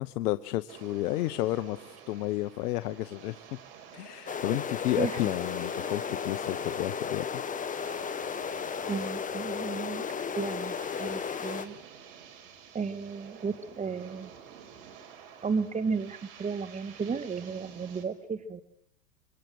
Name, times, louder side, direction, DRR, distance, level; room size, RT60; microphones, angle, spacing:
voice 1, 0.0-3.4 3.9-7.4, left 16 dB, 70° left, 13 dB, 1.1 m, -31 dB
sound 1, 0.7-18.0, right 8 dB, 60° right, 4.9 m, -50 dB
sound 2, 4.3-11.7, left 6 dB, 15° left, 1.5 m, -34 dB
voice 2, 4.3-4.6 4.9-5.3 8.9-10.1 10.4-11.8 12.7-14.3 15.4-18.6, right 5 dB, 15° right, 13 dB, 1.8 m, -34 dB
26.0 x 25.0 x 8.0 m, 0.74 s
supercardioid pair, 125°, 48 cm